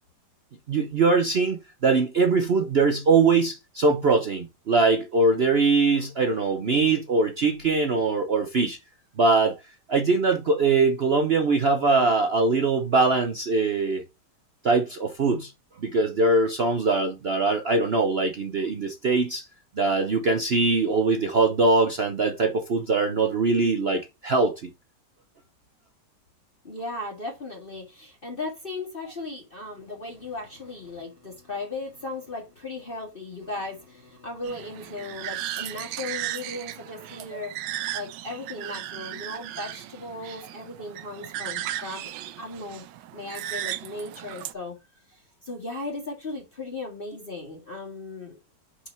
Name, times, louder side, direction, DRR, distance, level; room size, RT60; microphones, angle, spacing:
voice 1, 0.7-8.8 9.2-9.6 9.9-14.0 14.6-15.5 15.8-19.5 19.8-24.7, right 3 dB, 55° right, 0.7 m, -22 dB
voice 2, 26.6-37.5 37.9-42.1 42.4-42.8 43.1-44.7 45.1-48.4, left 2 dB, 30° left, 1.9 m, -37 dB
sound 1, 34.4-44.5, right 13 dB, 80° right, 1.2 m, -36 dB
5.9 x 4.9 x 4.4 m
omnidirectional pair, 2.0 m